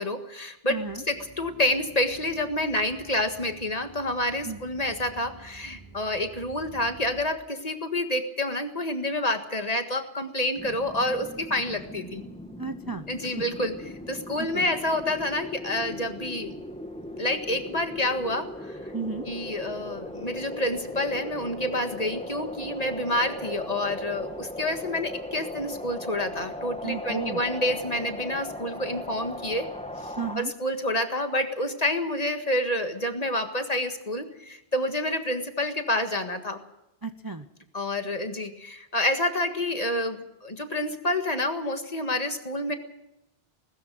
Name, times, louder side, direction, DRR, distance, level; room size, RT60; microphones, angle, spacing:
voice 1, 0.0-0.8 1.1-12.2 13.1-13.8 14.1-16.5 17.2-18.9 19.3-29.7 30.0-36.6 37.7-42.7, left 1 dB, 40° left, 6 dB, 1.8 m, -28 dB
voice 2, 0.7-1.0 4.4-4.6 12.6-13.4 14.4-14.7 18.9-19.3 26.8-27.4 30.2-30.5 37.0-37.5, right 4 dB, 25° right, 9 dB, 0.7 m, -33 dB
sound 1, 0.7-7.2, right 4 dB, 50° right, 7.1 m, -50 dB
sound 2, 10.6-30.4, left 1 dB, 5° left, 1.4 m, -38 dB
20.0 x 14.0 x 9.5 m, 0.87 s
omnidirectional pair, 1.0 m